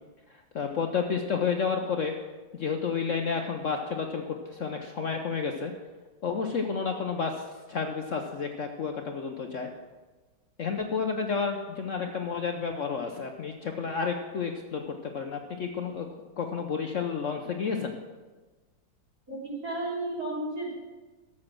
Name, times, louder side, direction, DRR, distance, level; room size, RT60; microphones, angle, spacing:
voice 1, 0.5-2.1 2.5-5.7 6.2-7.3 7.7-9.7 10.6-16.1 16.4-18.0, left 5 dB, 55° left, 4 dB, 0.9 m, -31 dB
voice 2, 19.3-20.7, right 2 dB, 55° right, -4 dB, 3.8 m, -33 dB
12.5 x 7.6 x 6.1 m, 1.3 s
omnidirectional pair, 1.9 m